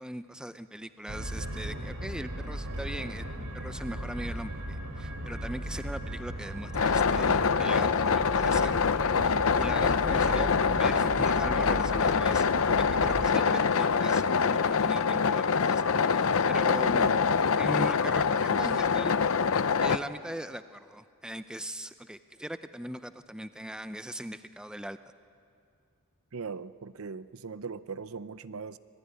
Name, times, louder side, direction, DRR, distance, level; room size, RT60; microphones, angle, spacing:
voice 1, 0.0-3.3 3.5-10.5 10.8-17.1 17.6-19.2 19.8-25.0, right 1 dB, 5° right, 11 dB, 0.5 m, -40 dB
sound 1, 1.1-13.3, right 1 dB, 85° right, 3.3 m, -37 dB
sound 2, 6.7-20.0, left 5 dB, 65° left, 0.6 m, -25 dB
voice 2, 26.3-28.8, right 5 dB, 70° right, 15 dB, 0.6 m, -39 dB
25.5 x 18.0 x 9.7 m, 2.4 s
head